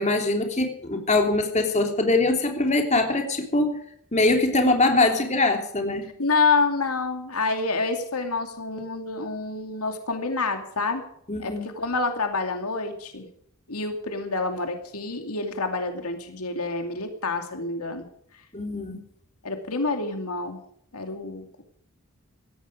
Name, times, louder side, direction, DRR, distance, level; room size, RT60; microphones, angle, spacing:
voice 1, 0.0-3.8 4.1-6.1 11.3-11.6 18.5-19.0, left 2 dB, 30° left, 4 dB, 3.2 m, -22 dB
voice 2, 6.2-11.0 11.4-13.3 13.7-18.1 19.4-20.6 20.9-21.6, left 3 dB, 80° left, 6 dB, 2.5 m, -27 dB
17.5 x 14.5 x 5.0 m, 0.68 s
head